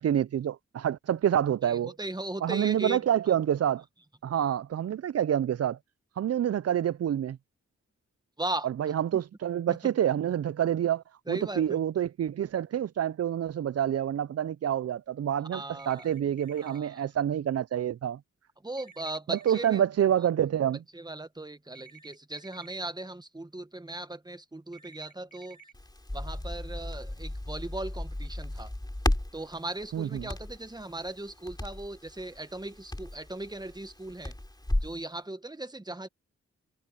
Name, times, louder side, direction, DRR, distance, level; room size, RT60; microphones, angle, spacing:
voice 1, 0.0-2.0 2.4-3.8 4.2-5.8 6.2-7.4 8.6-18.2 19.3-20.8 29.9-30.3, right 10 dB, 55° right, 0.4 m, -27 dB
voice 2, 1.8-3.0 8.4-8.7 9.1-9.2 9.7-9.8 11.3-11.8 15.5-16.1 16.6-17.0 18.6-19.8 20.9-25.6 26.1-28.7 29.3-34.3 34.8-36.1, right 2 dB, 15° right, 1.3 m, -38 dB
sound 1, 15.8-16.8 18.8-19.8 21.8-22.7 24.7-25.7, right 5 dB, 75° left, 4.4 m, -53 dB
Crackle, 25.7-35.0, left 1 dB, 15° left, 3.0 m, -35 dB
cardioid pair, 65°, 29 cm